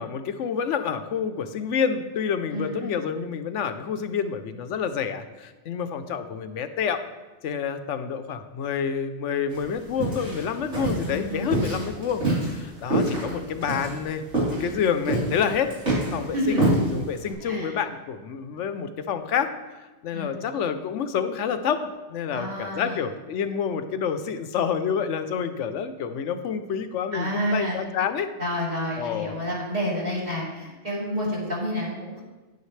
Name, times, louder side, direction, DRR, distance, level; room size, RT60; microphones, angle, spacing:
voice 1, 0.0-7.0 7.4-12.2 12.5-14.2 14.5-15.7 16.1-19.5 20.0-28.3 29.0-29.3, left 7 dB, 90° left, 10 dB, 1.0 m, -28 dB
voice 2, 2.5-3.0 11.0-11.6 16.3-16.6 17.4-17.8 20.1-20.4 22.3-23.0 27.1-27.8 28.4-32.2, equal, 35° right, -6 dB, 3.3 m, -29 dB
sound 1, 9.5-17.3, right 2 dB, 85° right, 4.2 m, -27 dB
10.5 x 9.4 x 3.2 m, 1.2 s
omnidirectional pair, 1.2 m